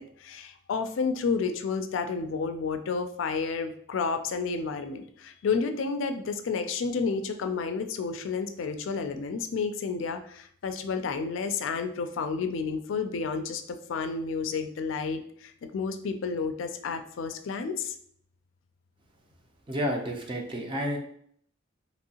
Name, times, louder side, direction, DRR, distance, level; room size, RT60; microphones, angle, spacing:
voice 1, 0.0-18.0, left 5 dB, 75° left, 8 dB, 0.3 m, -31 dB
voice 2, 19.7-21.0, equal, 25° right, 2 dB, 0.5 m, -30 dB
2.9 x 2.7 x 2.8 m, 0.63 s
head